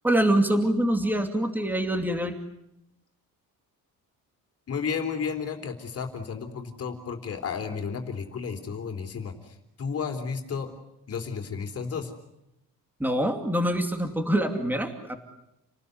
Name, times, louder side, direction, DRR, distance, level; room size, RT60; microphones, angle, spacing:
voice 1, 0.0-2.4 13.0-15.2, right 1 dB, 5° right, 5 dB, 2.6 m, -25 dB
voice 2, 4.7-10.7 11.1-12.1, left 6 dB, 40° left, 5 dB, 3.7 m, -32 dB
29.5 x 19.5 x 9.6 m, 0.85 s
cardioid pair, 150°, 37 cm